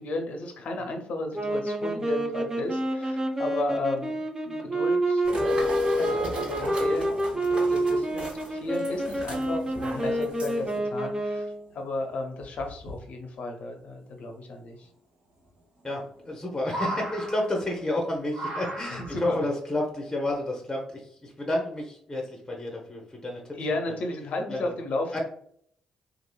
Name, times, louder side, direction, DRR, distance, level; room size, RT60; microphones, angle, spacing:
voice 1, 0.0-14.9 18.9-19.4 23.6-25.2, left 2 dB, 60° left, 3 dB, 0.5 m, -34 dB
sound 1, 1.3-11.7, right 1 dB, 20° right, 0.5 m, -28 dB
sound 2, 5.2-10.8, left 2 dB, 40° right, 1.4 m, -33 dB
sound 3, 11.3-11.4 11.7-11.8 12.4-13.0 14.5-14.6 15.8-16.3 16.6-17.9 18.3-19.3 20.3-20.4, right 1 dB, 60° right, 1.0 m, -36 dB
voice 2, 15.8-23.6 24.5-24.7 25.1-25.2, left 1 dB, 15° left, -1 dB, 0.7 m, -31 dB
2.9 x 2.4 x 2.2 m, 0.65 s
hypercardioid pair, 45°, 3 cm